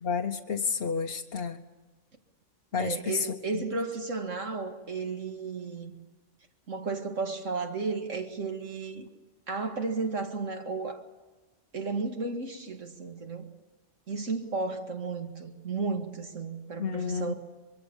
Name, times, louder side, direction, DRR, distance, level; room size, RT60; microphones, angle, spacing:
voice 1, 0.0-1.6 2.7-3.6 16.8-17.3, left 5 dB, 55° left, 1.1 m, -31 dB
voice 2, 2.8-5.9 6.7-9.1 9.5-11.0 11.7-13.5 14.1-17.3, right 4 dB, 90° right, 2.5 m, -33 dB
24.0 x 23.5 x 7.2 m
omnidirectional pair, 1.3 m